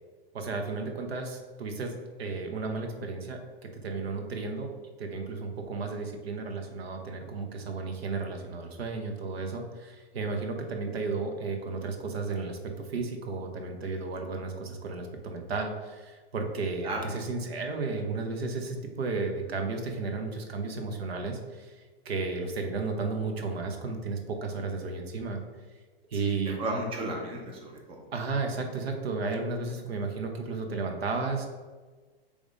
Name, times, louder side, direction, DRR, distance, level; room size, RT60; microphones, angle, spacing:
voice 1, 0.3-4.7 5.0-25.4 26.1-26.6 28.1-31.5, right 3 dB, 85° right, 4 dB, 1.2 m, -33 dB
voice 2, 26.1-28.0, right 1 dB, 20° right, 0 dB, 0.9 m, -34 dB
5.1 x 3.5 x 5.3 m, 1.3 s
hypercardioid pair, 155°, 30 cm